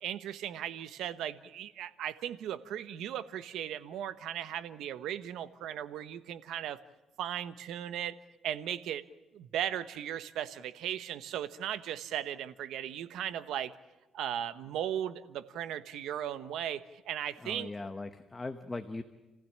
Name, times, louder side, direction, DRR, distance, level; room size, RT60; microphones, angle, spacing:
voice 1, 0.0-6.8 7.2-8.2 8.4-9.1 9.3-13.7 14.1-17.7, right 10 dB, 90° right, 13 dB, 1.1 m, -37 dB
voice 2, 17.4-19.0, left 2 dB, 15° left, 8 dB, 1.0 m, -39 dB
29.5 x 15.5 x 8.7 m, 1.1 s
cardioid pair, 135°, 0 cm